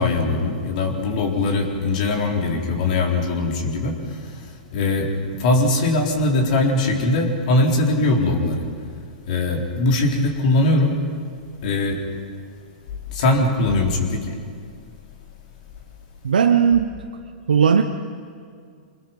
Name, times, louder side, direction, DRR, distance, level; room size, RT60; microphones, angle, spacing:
voice 1, 0.0-5.1 5.4-8.6 9.3-11.0 11.6-12.0 13.1-14.4, left 2 dB, 60° left, 1 dB, 4.0 m, -21 dB
voice 2, 16.2-17.0 17.5-17.8, right 7 dB, 90° right, 5 dB, 0.9 m, -16 dB
26.0 x 21.5 x 5.5 m, 2.2 s
hypercardioid pair, 120°, 5 cm